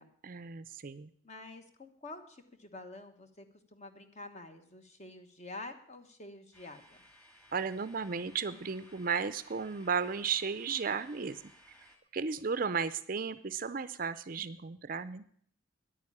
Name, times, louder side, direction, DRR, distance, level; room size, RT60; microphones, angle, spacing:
voice 1, 0.2-1.1 7.5-11.4 12.1-15.3, right 5 dB, 45° right, 14 dB, 0.5 m, -34 dB
voice 2, 1.2-3.4 3.7-7.0, left 2 dB, 35° left, 7 dB, 1.2 m, -48 dB
sound 1, 6.5-12.0, equal, 5° left, 1.8 m, -59 dB
10.0 x 9.0 x 8.6 m, 0.64 s
head